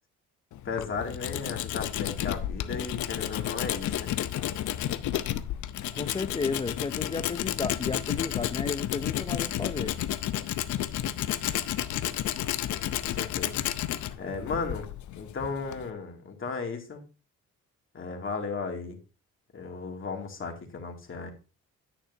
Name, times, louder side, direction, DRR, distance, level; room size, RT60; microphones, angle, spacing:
Tools, 0.5-15.9, left 12 dB, 75° left, 0.7 m, -32 dB
voice 1, 0.6-4.1 13.0-13.6 14.2-17.0 17.9-19.0 19.5-21.3, left 4 dB, 45° left, 2.4 m, -35 dB
voice 2, 5.9-10.0, left 4 dB, 20° left, 0.4 m, -33 dB
10.0 x 8.9 x 2.7 m
cardioid pair, 90°, 30 cm